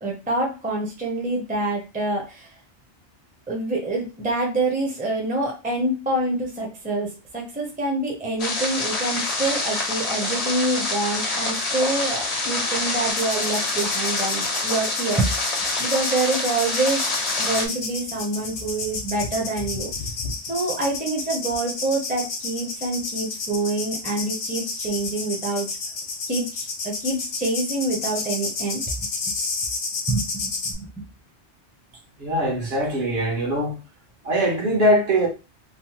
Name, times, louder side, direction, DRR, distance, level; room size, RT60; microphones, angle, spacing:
voice 1, 0.0-2.5 3.5-17.0 17.4-19.9 20.5-25.7 26.3-29.4 30.1-30.9, right 2 dB, 10° right, 0.6 m, -26 dB
sound 1, 8.4-17.7, left 2 dB, 40° left, 0.7 m, -26 dB
sound 2, 13.1-30.7, left 4 dB, 75° left, 1.0 m, -31 dB
voice 2, 32.2-33.8 34.2-35.3, equal, 60° right, 1.2 m, -22 dB
3.1 x 2.1 x 2.9 m
omnidirectional pair, 1.2 m